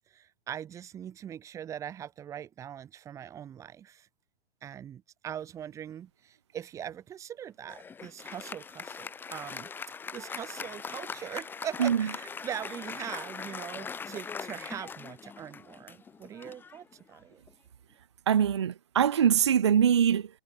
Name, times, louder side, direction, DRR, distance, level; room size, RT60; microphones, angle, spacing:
voice 1, 0.1-4.1 4.6-9.7 10.1-17.4, right 9 dB, 10° right, 1.6 m, -41 dB
Applause, 7.7-17.5, left 5 dB, 5° left, 2.1 m, -41 dB
voice 2, 18.3-20.3, right 8 dB, 25° right, 0.4 m, -23 dB
hypercardioid pair, 155°, 32 cm